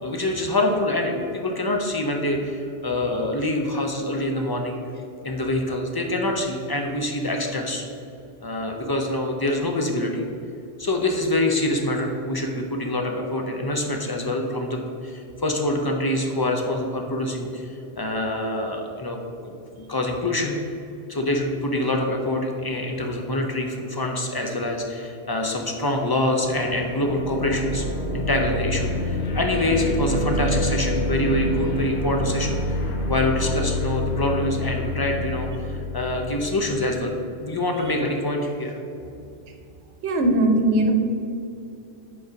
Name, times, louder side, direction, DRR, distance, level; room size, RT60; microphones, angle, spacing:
voice 1, 0.0-4.8 5.2-7.8 8.4-10.2 10.8-19.2 19.4-20.6 21.1-27.9 28.1-32.8 33.1-38.8, left 1 dB, 35° left, 2 dB, 0.4 m, -25 dB
sound 1, 26.4-36.6, left 1 dB, 75° left, 1.0 m, -27 dB
voice 2, 40.0-40.9, right 1 dB, 90° right, 5 dB, 1.0 m, -19 dB
5.4 x 4.0 x 5.0 m, 2.6 s
omnidirectional pair, 1.1 m